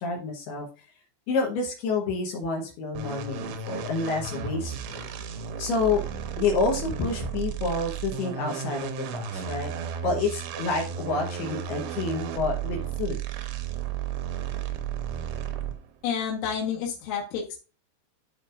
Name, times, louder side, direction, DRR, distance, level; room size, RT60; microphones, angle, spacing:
voice 1, 0.0-0.7 1.3-5.1 5.6-6.0 6.4-9.7 10.0-13.2, left 4 dB, 70° left, 0 dB, 2.9 m, -28 dB
sound 1, 3.0-15.9, right 8 dB, 80° right, 3.1 m, -34 dB
voice 2, 16.0-17.6, left 7 dB, 85° left, -2 dB, 3.9 m, -29 dB
13.0 x 4.9 x 2.5 m, 0.34 s
omnidirectional pair, 5.5 m